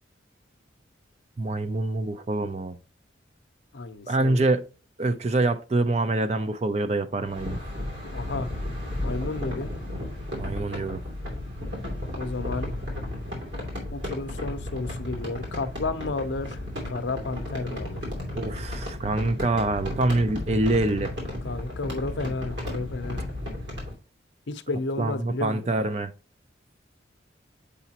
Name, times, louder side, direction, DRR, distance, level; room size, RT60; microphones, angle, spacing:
voice 1, 1.4-2.8 4.1-4.6 5.0-7.6 10.4-11.0 18.3-21.1 25.0-26.1, right 2 dB, 35° right, 0.5 m, -25 dB
voice 2, 3.7-4.5 8.1-8.5 9.0-9.7 12.2-12.7 13.9-16.6 16.9-18.0 21.4-23.2 24.5-25.7, left 3 dB, 70° left, 0.6 m, -32 dB
sound 1, 7.2-23.9, left 1 dB, 65° right, 2.7 m, -34 dB
6.9 x 4.9 x 2.8 m
head